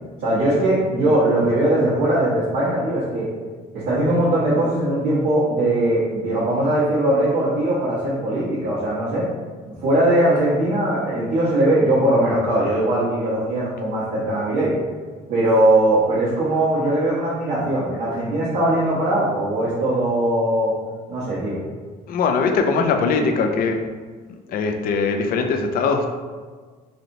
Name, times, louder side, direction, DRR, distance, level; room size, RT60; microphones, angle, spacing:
voice 1, 0.2-3.3 3.7-9.3 9.8-14.7 15.3-20.7 21.1-21.6, right 1 dB, 80° right, -12 dB, 1.1 m, -20 dB
voice 2, 22.1-23.8 24.5-26.1, left 4 dB, 60° left, 4 dB, 0.4 m, -21 dB
3.1 x 2.8 x 2.6 m, 1.5 s
cardioid pair, 110°, 17 cm